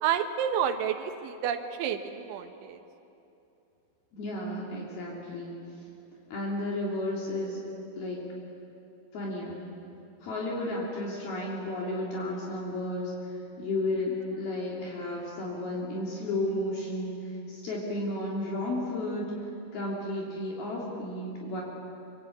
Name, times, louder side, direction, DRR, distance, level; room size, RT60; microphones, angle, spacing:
voice 1, 0.0-2.8, right 8 dB, 85° right, 8 dB, 3.7 m, -30 dB
voice 2, 4.1-5.5 6.3-7.6 8.0-8.2 9.1-9.6 10.2-19.3 19.7-21.6, left 1 dB, 55° left, -4 dB, 4.9 m, -33 dB
26.5 x 24.5 x 8.6 m, 2.9 s
omnidirectional pair, 5.4 m